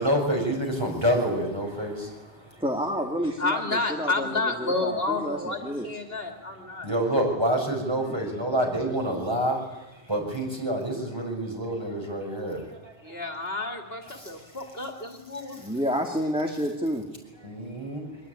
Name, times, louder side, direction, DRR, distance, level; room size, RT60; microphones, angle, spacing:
voice 1, 0.0-2.4 6.8-9.6 10.1-12.9 14.2-14.3 17.4-18.1, right 1 dB, 20° right, 0 dB, 6.8 m, -27 dB
voice 2, 2.6-5.9 8.1-8.2 15.6-17.1, equal, 5° right, 2 dB, 2.2 m, -29 dB
voice 3, 3.4-6.9 13.0-15.6, left 3 dB, 55° left, 4 dB, 2.9 m, -30 dB
24.5 x 20.5 x 9.9 m, 1.0 s
omnidirectional pair, 1.2 m